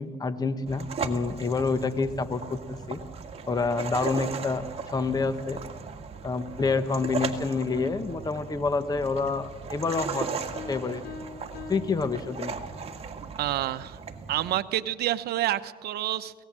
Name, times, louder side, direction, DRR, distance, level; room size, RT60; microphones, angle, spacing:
voice 1, 0.0-3.0 3.5-5.6 6.2-10.3 10.7-11.0 11.7-12.6, left 4 dB, 20° left, 11 dB, 1.1 m, -28 dB
sound 1, 0.7-14.6, right 5 dB, 35° right, 1.9 m, -37 dB
sound 2, 10.5-12.9, left 5 dB, 70° left, 3.2 m, -43 dB
voice 2, 13.4-14.0 14.3-16.3, right 13 dB, 70° right, 12 dB, 0.8 m, -28 dB
24.5 x 18.0 x 7.5 m, 1.4 s
cardioid pair, 110°, 17 cm